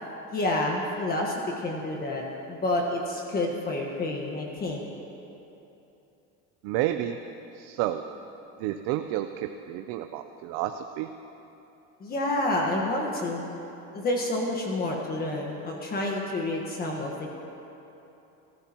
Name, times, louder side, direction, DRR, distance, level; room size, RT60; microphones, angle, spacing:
voice 1, 0.3-4.9 12.0-13.4 13.9-17.1, left 2 dB, 25° left, 0 dB, 1.5 m, -29 dB
voice 2, 6.6-7.2 7.5-8.0 8.6-11.1, right 13 dB, 70° right, 7 dB, 0.6 m, -30 dB
29.0 x 14.0 x 3.0 m, 3.0 s
cardioid pair, 160°, 33 cm